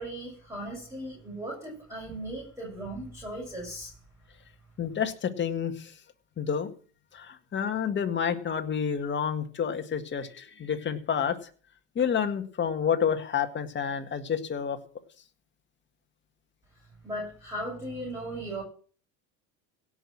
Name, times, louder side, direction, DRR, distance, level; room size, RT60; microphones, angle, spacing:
voice 1, 0.0-3.9 17.0-18.6, right 1 dB, 10° right, -3 dB, 7.6 m, -37 dB
voice 2, 4.8-5.9 6.4-6.7 7.1-11.4 12.0-14.8, left 7 dB, 30° left, 6 dB, 2.0 m, -29 dB
17.0 x 6.3 x 7.5 m, 0.42 s
supercardioid pair, 110°, 36 cm